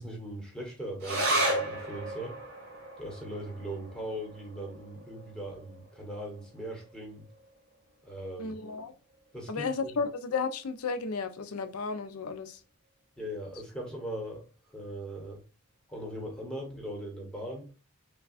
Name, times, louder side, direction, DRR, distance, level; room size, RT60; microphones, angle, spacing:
voice 1, 0.0-2.3 3.0-7.3 8.0-8.6 9.3-9.9 13.2-14.4 14.7-15.4 15.9-17.7, right 1 dB, 5° left, 1.2 m, -39 dB
sound 1, 1.0-7.8 8.1-8.2 8.5-9.2 9.8-9.9, right 1 dB, 45° right, 1.8 m, -35 dB
voice 2, 8.4-8.9 9.5-12.6, left 4 dB, 85° left, 0.6 m, -33 dB
5.6 x 2.3 x 2.4 m
head